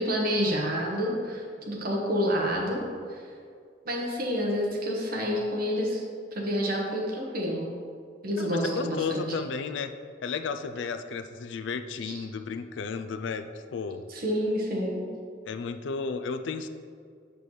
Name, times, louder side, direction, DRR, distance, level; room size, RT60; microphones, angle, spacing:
voice 1, 0.0-2.8 3.1-3.2 3.8-6.0 6.3-7.7 8.2-9.2 12.0-12.2 14.1-15.0, equal, 55° right, -2 dB, 1.3 m, -28 dB
voice 2, 8.4-9.9 10.2-14.0 15.5-16.7, left 5 dB, 80° left, 8 dB, 0.4 m, -33 dB
7.0 x 6.0 x 3.2 m, 2.2 s
head